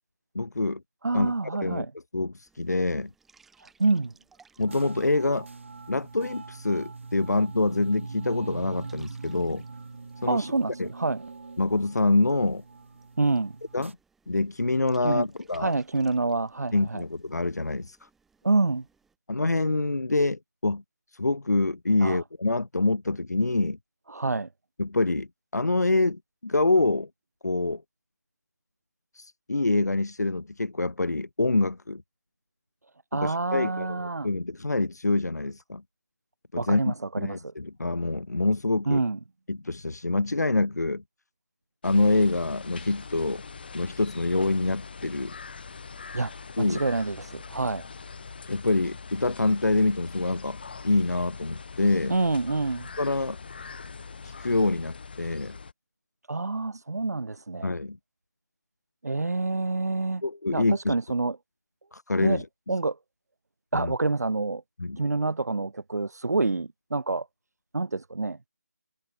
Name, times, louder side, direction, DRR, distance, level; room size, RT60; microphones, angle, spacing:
voice 1, 0.3-0.8 1.1-1.3 1.6-1.9 2.1-3.1 4.6-5.5 5.9-9.6 10.2-10.5 10.8-10.9 11.6-12.6 13.7-13.9 14.3-15.7 16.7-18.0 19.3-20.8 21.1-23.8 24.8-25.3 25.5-27.1 27.4-27.8 29.1-32.0 33.2-35.8 36.5-39.0 39.5-41.0 41.8-43.4 43.7-45.3 46.6-46.8 48.4-52.1 53.0-53.4 54.2-55.6 57.6-58.0 60.2-61.0 61.9-62.5 63.7-63.9 64.8-65.0, left 2 dB, 85° left, 2.6 m, -26 dB
voice 2, 1.0-1.9 3.6-4.1 10.3-11.2 13.2-13.6 15.0-15.3 15.6-17.0 18.4-18.8 22.0-22.2 24.1-24.5 33.1-34.3 36.6-37.4 38.9-39.2 46.1-47.8 52.1-52.9 56.3-57.8 59.0-60.2 60.5-61.4 62.2-62.4 62.7-63.0 63.7-64.6 65.0-67.3 67.7-68.4, right 3 dB, 75° right, 1.2 m, -27 dB
sound 1, 2.5-19.2, right 5 dB, ahead, 7.5 m, -64 dB
sound 2, 4.7-13.9, right 4 dB, 50° right, 2.4 m, -41 dB
sound 3, 41.8-55.7, left 5 dB, 35° left, 2.5 m, -42 dB
figure-of-eight pair, 175°, 9 cm